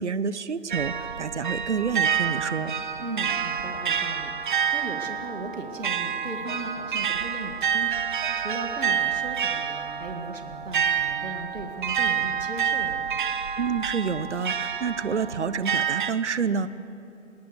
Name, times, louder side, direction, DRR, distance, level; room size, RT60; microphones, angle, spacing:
voice 1, 0.0-2.7 13.6-16.7, right 6 dB, 65° right, 16 dB, 1.0 m, -28 dB
sound 1, 0.7-16.1, right 7 dB, 40° right, 1.0 m, -28 dB
voice 2, 3.0-13.1, right 2 dB, 80° right, 4 dB, 2.3 m, -37 dB
20.5 x 19.0 x 8.2 m, 2.8 s
figure-of-eight pair, 145°, 38 cm